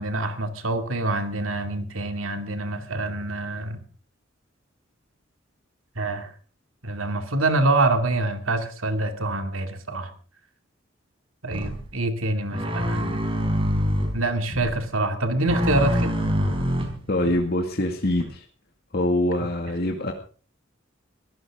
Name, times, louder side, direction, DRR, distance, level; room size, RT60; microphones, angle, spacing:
voice 1, 0.0-3.8 6.0-6.3 6.8-10.1 11.4-13.2 14.1-16.2, right 2 dB, 90° right, 7 dB, 2.5 m, -26 dB
sound 1, 11.5-11.8 12.5-14.2 14.5-14.8 15.5-17.4 18.2-18.3, equal, 25° right, 4.0 m, -25 dB
voice 2, 17.1-18.4 18.9-20.1, left 1 dB, 50° left, 2 dB, 2.2 m, -24 dB
22.5 x 15.5 x 3.7 m, 0.39 s
head